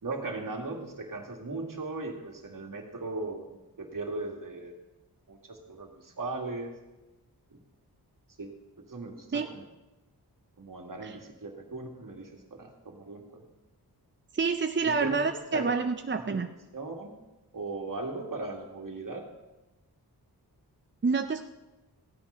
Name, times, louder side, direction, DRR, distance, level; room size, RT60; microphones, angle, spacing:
voice 1, 0.0-4.7 5.3-6.7 7.5-7.6 8.4-8.5 8.9-9.6 10.6-13.4 14.8-15.7 16.1-16.2 16.7-17.1 17.5-19.3, right 3 dB, 55° right, 2 dB, 2.1 m, -38 dB
voice 2, 14.3-16.5 21.0-21.4, right 4 dB, 30° right, 7 dB, 0.5 m, -28 dB
15.5 x 9.4 x 5.5 m, 1.1 s
wide cardioid pair, 105°, 39 cm